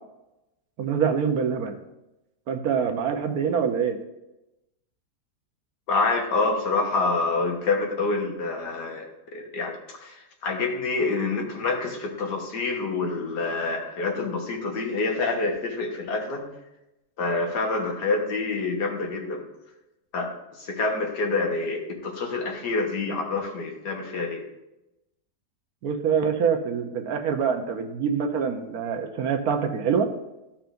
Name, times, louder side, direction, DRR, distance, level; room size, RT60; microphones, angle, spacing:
voice 1, 0.8-1.8 2.5-4.0 25.8-30.1, right 6 dB, 70° right, 5 dB, 1.2 m, -25 dB
voice 2, 5.9-16.5 17.2-19.5 20.1-24.4, left 3 dB, 80° left, 2 dB, 1.9 m, -27 dB
14.0 x 5.7 x 2.6 m, 0.94 s
omnidirectional pair, 1.8 m